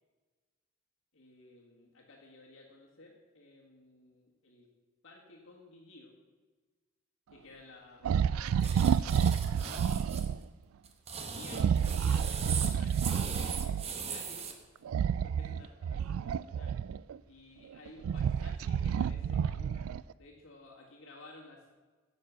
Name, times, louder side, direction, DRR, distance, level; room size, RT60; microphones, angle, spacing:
voice 1, 1.1-4.7 5.0-6.2 7.3-8.9 9.6-10.5 11.2-12.3 12.7-14.6 15.2-16.8 17.3-21.7, left 2 dB, 75° left, -6 dB, 2.0 m, -55 dB
sound 1, 8.0-10.4 11.5-13.9 14.9-17.2 17.7-20.1, right 7 dB, 85° right, 0.3 m, -30 dB
sound 2, 8.6-10.3 10.9-14.5, right 5 dB, 30° right, 0.9 m, -39 dB
11.0 x 7.4 x 6.1 m, 1.4 s
head